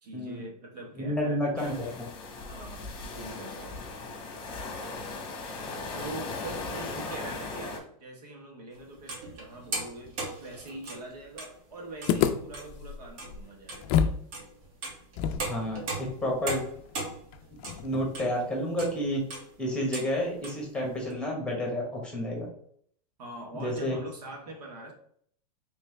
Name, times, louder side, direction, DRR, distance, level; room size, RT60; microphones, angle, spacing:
voice 1, 0.0-2.0 2.4-3.8 5.9-14.2 23.2-24.9, right 2 dB, 85° right, 0 dB, 1.4 m, -43 dB
voice 2, 0.9-1.7 15.5-16.6 17.8-19.2 19.6-22.5 23.5-24.0, equal, 5° left, -2 dB, 1.2 m, -30 dB
sound 1, 1.6-7.8, left 3 dB, 25° left, 1.0 m, -38 dB
sound 2, 8.7-11.6 11.9-12.2 12.5-12.9 13.2-13.4 13.7-13.8 14.3-18.4 18.8-19.0 19.3-19.5 19.9-20.1 20.4-20.6 21.1-21.2, right 2 dB, 55° right, 1.4 m, -38 dB
sound 3, 12.1-14.2 14.5-14.6 15.2-18.3, left 8 dB, 40° left, 0.4 m, -30 dB
3.3 x 3.2 x 3.3 m, 0.62 s
supercardioid pair, 135°, 20 cm